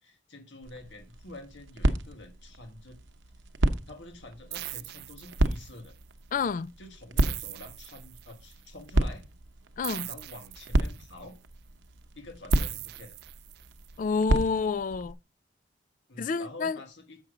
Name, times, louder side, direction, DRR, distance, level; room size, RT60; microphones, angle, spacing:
voice 1, 0.0-3.0 3.9-5.9 6.8-9.2 10.0-11.4 12.1-13.2 16.1-17.2, left 2 dB, 75° left, 1.5 m, -47 dB
sound 1, 0.6-15.1, right 1 dB, 90° right, 0.9 m, -32 dB
sound 2, 4.5-5.9 7.2-8.5 9.8-11.2 12.5-13.9, right 17 dB, 60° right, 0.3 m, -40 dB
voice 2, 6.3-6.7 9.8-10.1 14.0-15.2 16.2-16.8, left 5 dB, 45° left, 0.3 m, -28 dB
7.1 x 6.5 x 4.9 m
head